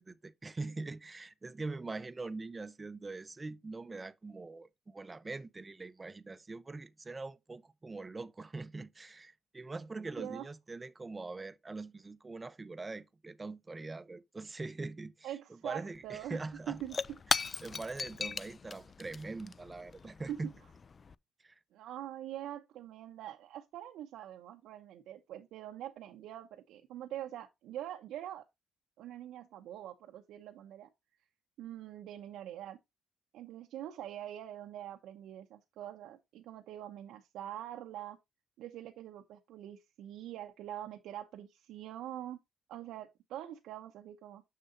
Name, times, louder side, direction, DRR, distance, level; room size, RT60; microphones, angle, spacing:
voice 1, 0.0-15.3 15.6-16.8 17.6-20.5 21.4-21.5, right 3 dB, 25° right, 0.7 m, -43 dB
voice 2, 10.2-10.5 15.2-16.4 16.7-17.2 20.3-20.5 21.7-28.4 29.0-30.9 31.6-32.8 33.3-38.2 38.6-42.4 42.7-44.4, right 12 dB, 85° right, 0.8 m, -44 dB
Shatter / Crushing, 15.9-16.0 16.3-21.1, left 5 dB, 40° left, 0.3 m, -38 dB
6.7 x 6.6 x 2.6 m
cardioid pair, 90°, 0 cm